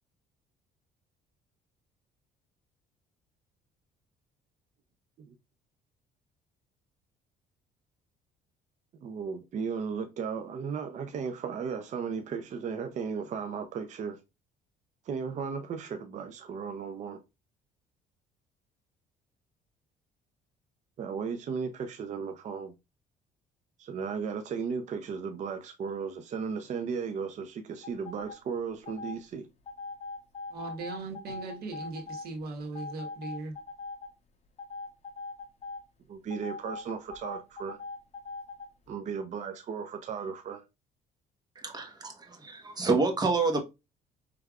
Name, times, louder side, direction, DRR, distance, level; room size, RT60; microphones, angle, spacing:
voice 1, 9.0-14.2 15.0-17.2 21.0-22.7 23.8-29.5 36.1-37.8 38.9-40.6, right 6 dB, 45° right, 0.6 m, -35 dB
sound 1, 27.8-28.4 28.9-29.2 29.7-32.3 32.7-34.1 34.6-35.8 36.3-38.7, left 3 dB, 40° left, 0.9 m, -41 dB
voice 2, 30.5-33.6, right 3 dB, 70° right, 1.5 m, -39 dB
voice 3, 41.6-43.6, right 3 dB, 25° right, 1.1 m, -28 dB
4.7 x 3.4 x 2.4 m
cardioid pair, 110°, 17 cm